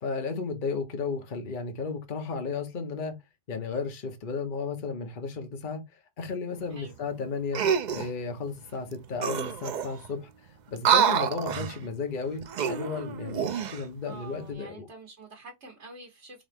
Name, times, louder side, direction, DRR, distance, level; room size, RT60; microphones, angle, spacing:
voice 1, 0.0-3.1 3.5-7.6 7.9-14.9, left 4 dB, 50° left, 1.0 m, -34 dB
sound 1, 7.5-8.1 8.9-9.0 9.2-10.1 10.8-11.8 12.4-13.8 14.3-14.5, right 8 dB, 55° right, 0.5 m, -27 dB
voice 2, 14.1-16.5, right 3 dB, 80° right, 1.6 m, -47 dB
3.9 x 3.8 x 3.5 m
omnidirectional pair, 1.1 m